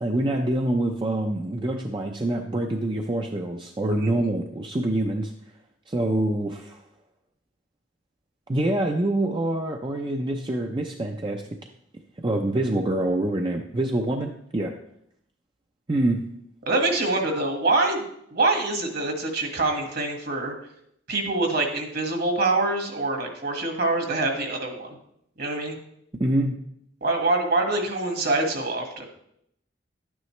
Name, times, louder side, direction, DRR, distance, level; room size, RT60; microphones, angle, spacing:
voice 1, 0.0-5.3 5.9-6.8 8.5-11.4 12.2-14.7 15.9-16.2 26.2-26.6, right 1 dB, 25° right, 3 dB, 0.6 m, -25 dB
voice 2, 16.7-18.1 18.3-20.5 21.1-25.0 25.4-25.8 27.0-29.1, right 2 dB, 55° right, 3 dB, 1.8 m, -25 dB
11.5 x 9.4 x 3.2 m, 0.74 s
head